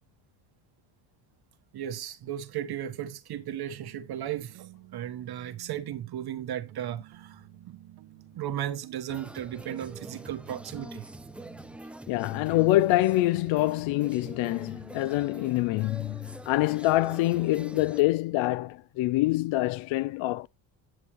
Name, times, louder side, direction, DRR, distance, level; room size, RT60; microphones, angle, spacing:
voice 1, 1.7-7.8 8.4-11.0, right 11 dB, 55° right, 1.1 m, -35 dB
sound 1, 3.7-11.8, right 14 dB, 75° right, 1.2 m, -52 dB
sound 2, 9.1-18.0, right 1 dB, 5° right, 0.4 m, -45 dB
voice 2, 12.1-20.5, left 17 dB, 85° left, 0.5 m, -25 dB
9.1 x 7.8 x 3.0 m
cardioid pair, 105°, 45 cm